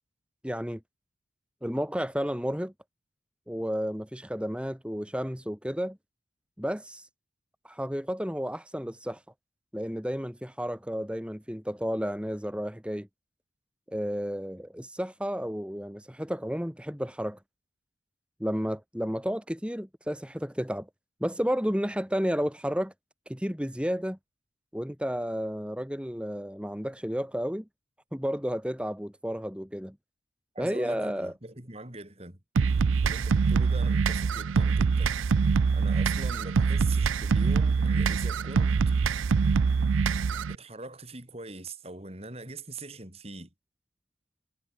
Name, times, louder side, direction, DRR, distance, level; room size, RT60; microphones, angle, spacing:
voice 1, 0.4-0.8 1.6-2.7 3.5-6.0 6.6-7.1 7.6-9.2 9.7-13.1 13.9-17.4 18.4-20.9 21.2-22.9 23.3-24.2 24.7-27.7 28.1-30.0 30.6-31.3, equal, 5° right, 2.4 m, -32 dB
voice 2, 30.5-32.4 33.0-35.1 35.7-38.9 40.5-43.5, right 2 dB, 30° right, 3.5 m, -42 dB
sound 1, 32.6-40.5, right 5 dB, 90° right, 0.5 m, -24 dB
head